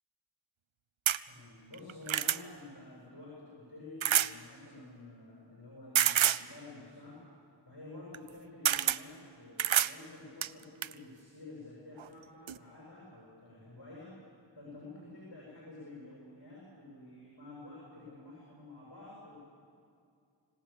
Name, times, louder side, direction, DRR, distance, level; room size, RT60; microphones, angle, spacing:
sound 1, 1.1-1.2 1.7-2.4 4.0-4.3 5.9-6.4 8.1-8.3 8.6-9.0 9.6-9.9 10.4-10.9 12.0-12.1 12.5-12.6, right 10 dB, 80° right, 0.6 m, -28 dB
voice 1, 1.3-7.2 7.7-14.1 14.5-19.4, left 2 dB, 55° left, -6 dB, 7.9 m, -50 dB
26.0 x 18.0 x 7.5 m, 2.3 s
wide cardioid pair, 45°, 47 cm